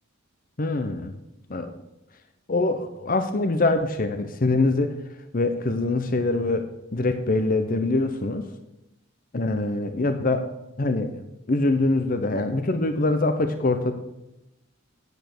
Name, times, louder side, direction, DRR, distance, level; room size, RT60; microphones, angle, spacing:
voice 1, 0.6-1.1 1.5-1.7 2.5-4.9 5.3-6.6 6.9-8.4 9.3-10.4 10.8-13.9, left 2 dB, 40° left, 8 dB, 0.7 m, -24 dB
9.2 x 8.3 x 6.6 m, 0.93 s
head